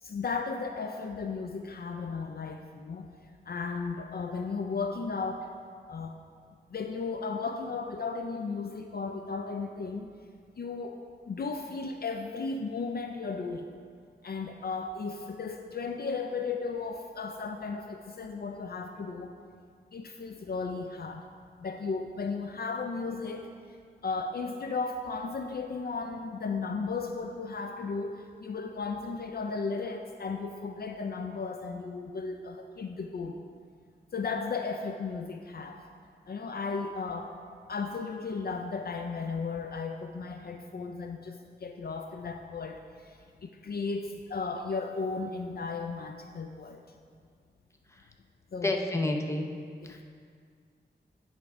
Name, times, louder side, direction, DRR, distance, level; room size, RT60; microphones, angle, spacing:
voice 1, 0.0-3.1 3.5-5.5 5.9-6.2 6.7-10.1 10.6-13.7 14.2-19.3 19.9-21.3 21.6-23.5 24.0-33.4 34.1-35.8 36.3-37.3 37.7-46.8 48.5-48.7 49.8-50.0, left 4 dB, 55° left, 5 dB, 0.4 m, -35 dB
voice 2, 48.6-49.5 49.8-50.0, left 2 dB, 15° left, 3 dB, 0.6 m, -29 dB
9.2 x 3.5 x 4.8 m, 2.1 s
wide cardioid pair, 80°, 18 cm